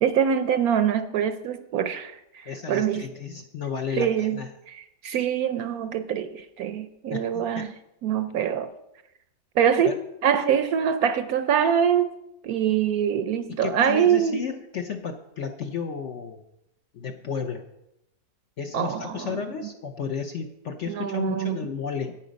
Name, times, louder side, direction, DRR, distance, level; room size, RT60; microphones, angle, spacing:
voice 1, 0.0-3.0 4.0-4.4 5.0-7.7 8.0-8.7 9.6-9.9 10.2-12.1 12.4-14.4 18.7-19.3 20.9-21.6, right 8 dB, 70° right, 0.9 m, -24 dB
voice 2, 2.5-4.5 7.1-7.7 9.8-10.0 13.5-16.4 16.9-17.6 18.6-22.1, left 6 dB, 60° left, 0.8 m, -33 dB
10.0 x 8.9 x 5.2 m
omnidirectional pair, 1.9 m